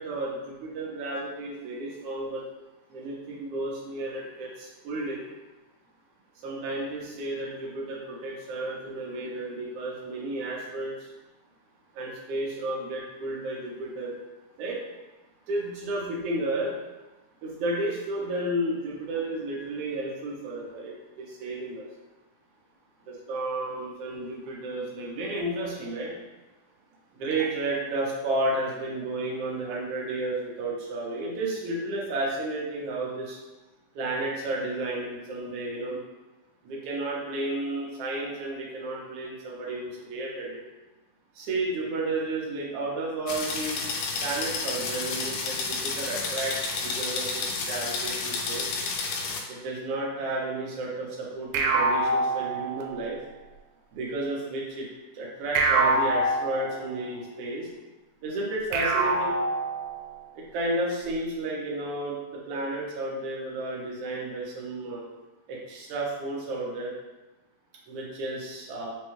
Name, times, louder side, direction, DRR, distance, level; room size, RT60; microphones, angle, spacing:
voice 1, 0.0-2.4 2.9-5.2 6.4-11.1 11.9-14.1 14.6-14.8 15.5-16.7 17.4-21.9 23.1-26.1 27.1-33.4 33.9-36.0 36.6-40.6 41.3-43.8 44.2-48.6 49.5-53.2 53.9-54.9 55.1-57.7 58.2-59.3 60.3-65.0 65.5-66.9 67.9-68.9, right 2 dB, 75° right, -4 dB, 1.5 m, -32 dB
sound 1, 43.3-49.4, left 4 dB, 90° left, 2.2 m, -31 dB
sound 2, 51.5-53.2 55.6-57.1 58.7-60.2, right 3 dB, 90° right, 2.1 m, -25 dB
5.3 x 2.2 x 3.0 m, 1.1 s
omnidirectional pair, 3.6 m